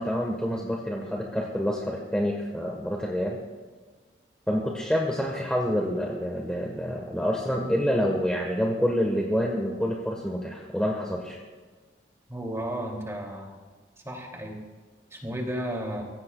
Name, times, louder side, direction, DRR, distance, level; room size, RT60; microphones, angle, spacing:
voice 1, 0.0-3.4 4.5-11.4, equal, 5° left, -1 dB, 1.3 m, -27 dB
voice 2, 12.3-13.5 14.0-14.6 15.1-16.0, right 1 dB, 15° right, 0 dB, 2.8 m, -33 dB
24.0 x 16.0 x 2.4 m, 1.4 s
head